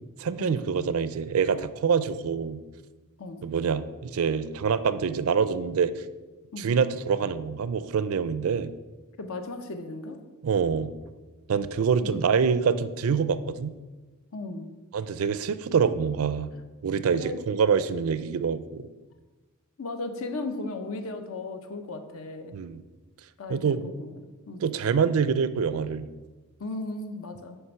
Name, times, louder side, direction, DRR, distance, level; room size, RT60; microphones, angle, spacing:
voice 1, 0.2-2.6 3.4-5.9 6.6-8.7 10.4-10.9 11.5-13.7 14.9-16.5 16.8-18.9 22.5-22.8 23.5-23.8 24.6-26.1, right 6 dB, 70° right, 14 dB, 0.4 m, -25 dB
voice 2, 9.2-10.2 12.0-12.1 14.3-14.7 17.1-17.4 19.8-22.5 23.4-24.1 24.5-24.6 26.6-27.6, left 2 dB, 70° left, 7 dB, 0.8 m, -36 dB
9.4 x 3.4 x 5.7 m, 1.2 s
head